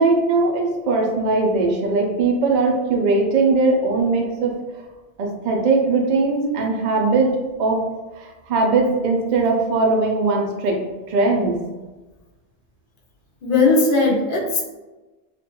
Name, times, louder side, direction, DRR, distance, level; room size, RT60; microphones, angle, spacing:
voice 1, 0.0-4.5 5.2-7.3 7.6-7.8 8.2-10.8 11.1-11.6, right 3 dB, 60° right, 1 dB, 0.5 m, -20 dB
voice 2, 13.4-14.6, left 3 dB, 55° left, -2 dB, 0.7 m, -18 dB
2.4 x 2.2 x 2.8 m, 1.2 s
omnidirectional pair, 1.2 m